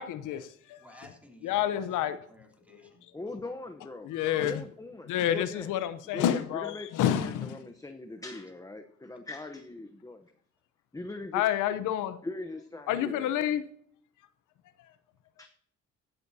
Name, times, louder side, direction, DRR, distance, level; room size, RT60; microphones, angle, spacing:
voice 1, 0.0-0.8 1.4-2.2 4.0-4.6 5.1-7.6 11.3-12.2 12.9-13.6, left 11 dB, 85° left, 12 dB, 0.8 m, -29 dB
voice 2, 0.8-3.1, equal, 5° right, 0 dB, 3.4 m, -55 dB
voice 3, 3.1-4.1 4.4-5.7 6.1-10.3 10.9-11.4 12.2-13.3 15.4-15.5, left 2 dB, 10° left, 6 dB, 0.8 m, -41 dB
15.5 x 11.5 x 2.8 m, 0.62 s
cardioid pair, 90°, 30 cm